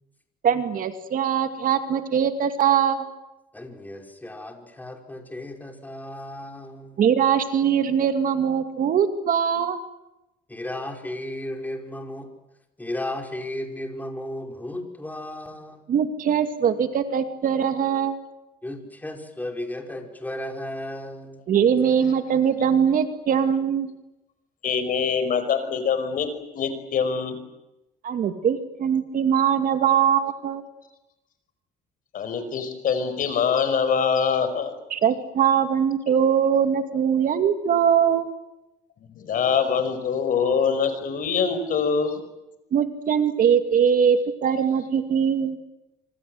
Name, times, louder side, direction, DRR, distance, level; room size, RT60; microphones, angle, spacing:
voice 1, 0.4-3.1 7.0-9.8 15.9-18.2 21.5-23.9 28.0-30.6 34.9-38.3 42.7-45.6, right 8 dB, 55° right, 8 dB, 2.5 m, -21 dB
voice 2, 3.5-7.0 10.5-12.3 12.8-15.8 18.6-21.4, left 1 dB, 10° left, 3 dB, 5.3 m, -34 dB
voice 3, 24.6-26.3 26.5-27.4 32.1-34.7 39.0-42.2, left 6 dB, 55° left, 10 dB, 5.4 m, -24 dB
26.0 x 25.5 x 8.0 m, 0.93 s
cardioid pair, 110°, 17 cm